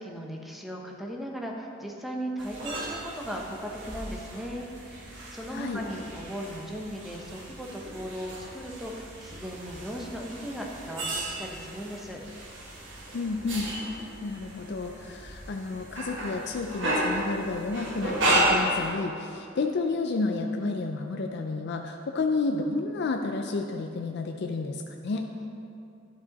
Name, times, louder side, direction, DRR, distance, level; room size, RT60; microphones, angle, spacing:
voice 1, 0.0-12.2 25.4-25.5, equal, ahead, 0 dB, 0.7 m, -37 dB
sound 1, 2.4-18.9, right 1 dB, 65° right, 1.6 m, -33 dB
voice 2, 13.1-13.7 14.2-25.3, left 3 dB, 55° left, 4 dB, 0.4 m, -31 dB
11.0 x 5.5 x 4.0 m, 2.6 s
head